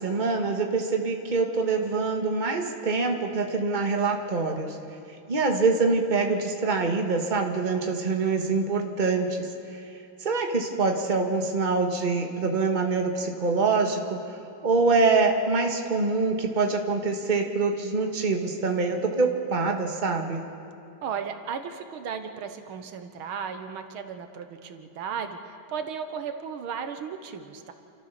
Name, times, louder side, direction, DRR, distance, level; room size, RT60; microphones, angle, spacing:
voice 1, 0.0-4.8 5.3-9.5 10.2-14.2 14.6-20.4, right 4 dB, 25° right, 3 dB, 1.6 m, -25 dB
voice 2, 21.0-27.7, right 6 dB, 85° right, 8 dB, 2.0 m, -35 dB
29.0 x 14.0 x 6.9 m, 2.7 s
omnidirectional pair, 2.2 m